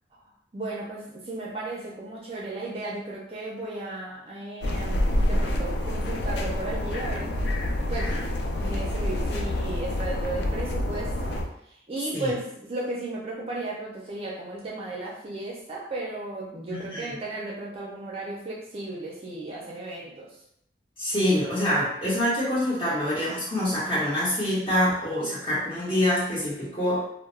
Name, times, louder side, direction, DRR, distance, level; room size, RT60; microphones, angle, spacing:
voice 1, 0.5-7.3 7.9-8.2 8.6-11.4 11.7-20.4, right 2 dB, 35° right, -4 dB, 0.4 m, -35 dB
sound 1, 4.6-11.4, left 1 dB, 75° left, 0.4 m, -27 dB
voice 2, 16.7-17.1 21.0-27.0, left 1 dB, 30° left, -9 dB, 1.1 m, -25 dB
2.2 x 2.1 x 3.2 m, 0.73 s
head